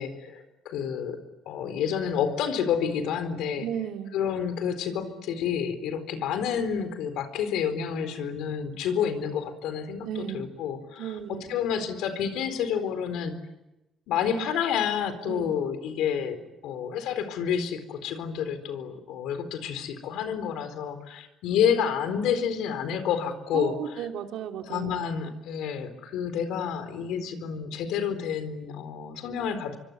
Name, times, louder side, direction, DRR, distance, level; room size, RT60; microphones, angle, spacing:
voice 1, 0.0-3.7 4.1-13.3 14.1-23.8 24.7-29.8, left 8 dB, 85° left, 10 dB, 4.2 m, -29 dB
voice 2, 3.6-4.2 10.0-10.4 11.0-11.6 15.2-15.5 23.5-25.0, right 9 dB, 80° right, 4 dB, 3.1 m, -34 dB
25.0 x 25.0 x 9.4 m, 0.94 s
cardioid pair, 110°, 0 cm